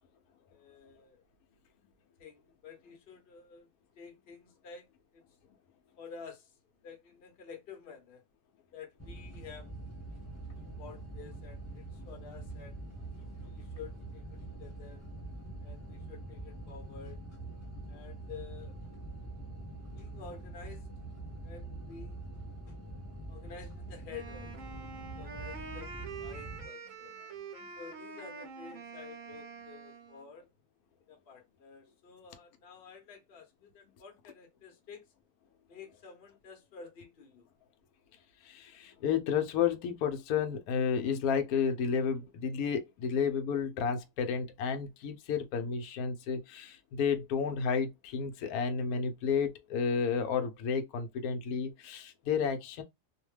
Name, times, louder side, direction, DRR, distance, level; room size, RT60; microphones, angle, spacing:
voice 1, 0.5-1.2 2.2-3.7 4.0-5.2 6.0-6.5 6.8-8.2 8.7-9.7 10.8-12.8 13.4-15.0 15.6-17.2 17.9-18.8 19.9-20.9 21.4-22.8 23.3-27.1 27.8-30.5 31.1-35.1 35.7-37.5, left 6 dB, 50° left, 0.8 m, -50 dB
sound 1, 9.0-26.7, right 2 dB, 15° left, 0.7 m, -44 dB
Wind instrument woodwind instrument, 24.1-30.3, right 5 dB, 60° right, 1.0 m, -46 dB
voice 2, 38.4-52.8, left 6 dB, 75° left, 1.0 m, -31 dB
2.7 x 2.1 x 3.1 m
omnidirectional pair, 1.7 m